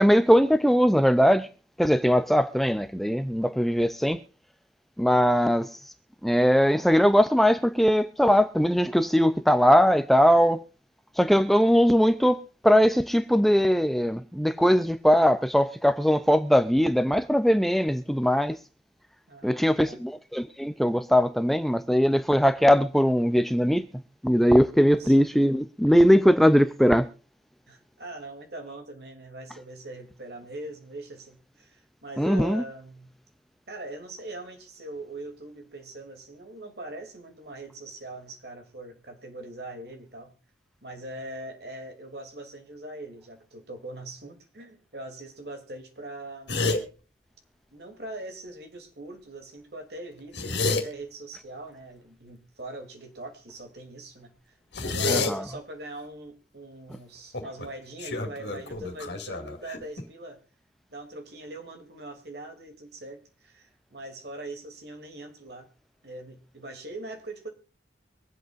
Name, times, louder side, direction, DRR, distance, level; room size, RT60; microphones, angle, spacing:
voice 1, 0.0-1.5 1.8-4.2 5.0-5.7 6.2-10.6 11.2-12.4 12.6-18.6 19.4-23.9 24.2-27.1 32.2-32.6 55.1-55.4, equal, ahead, 0.4 m, -20 dB
voice 2, 19.3-20.0 24.9-25.2 27.7-33.2 33.7-40.3 40.8-46.6 47.7-60.4 60.9-65.7 66.0-67.5, right 2 dB, 60° right, 2.9 m, -41 dB
sound 1, 46.5-46.8 50.2-50.8 54.7-55.3 57.3-57.7 58.0-60.0, left 3 dB, 65° left, 2.3 m, -28 dB
24.5 x 8.1 x 2.5 m
head